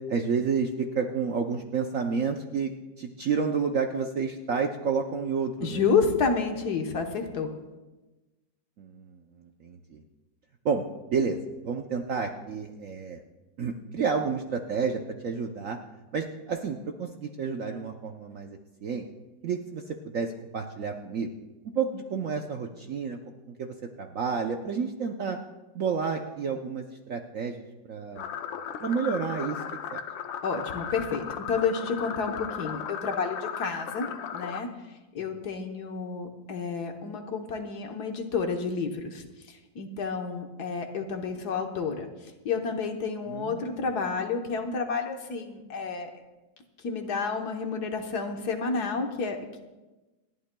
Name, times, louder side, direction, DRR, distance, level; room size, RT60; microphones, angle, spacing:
voice 1, 0.0-2.7 3.0-5.8 8.8-10.0 10.6-11.4 11.6-13.2 13.6-15.8 16.1-19.0 19.4-21.3 21.7-23.2 23.6-25.4 25.7-28.3 28.8-29.6 29.9-30.0 43.3-43.6, right 5 dB, 60° right, 4 dB, 0.9 m, -30 dB
voice 2, 5.6-7.5 30.4-34.1 34.3-34.7 35.1-39.2 39.7-42.1 42.4-46.1 46.8-49.6, left 5 dB, 60° left, 4 dB, 1.5 m, -30 dB
sound 1, 28.2-34.6, left 8 dB, 85° left, 1.5 m, -36 dB
28.0 x 11.5 x 2.2 m, 1.1 s
omnidirectional pair, 2.0 m